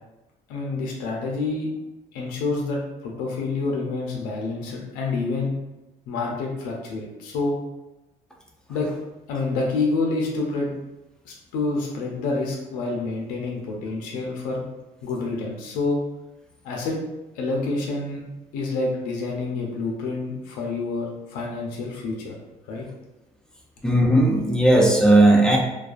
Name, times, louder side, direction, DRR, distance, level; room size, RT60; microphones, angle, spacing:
voice 1, 0.5-1.7 2.1-5.5 6.1-7.6 8.7-8.9 9.3-10.7 11.2-14.6 15.0-16.0 16.6-17.0 17.3-18.2 18.5-22.3 22.7-22.9, left 3 dB, 90° left, -1 dB, 0.5 m, -28 dB
voice 2, 23.8-25.6, right 1 dB, 5° left, -1 dB, 0.4 m, -16 dB
2.3 x 2.3 x 2.4 m, 0.99 s
cardioid pair, 115°, 15 cm